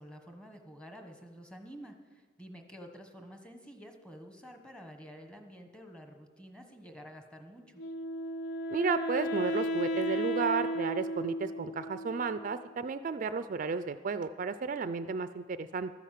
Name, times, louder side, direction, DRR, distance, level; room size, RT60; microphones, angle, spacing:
voice 1, 0.0-7.8, equal, 5° left, 4 dB, 1.2 m, -50 dB
Wind instrument woodwind instrument, 7.8-12.8, equal, 70° left, 0.7 m, -35 dB
voice 2, 8.7-15.9, right 4 dB, 45° right, 11 dB, 0.4 m, -33 dB
13.0 x 10.0 x 7.5 m, 1.5 s
head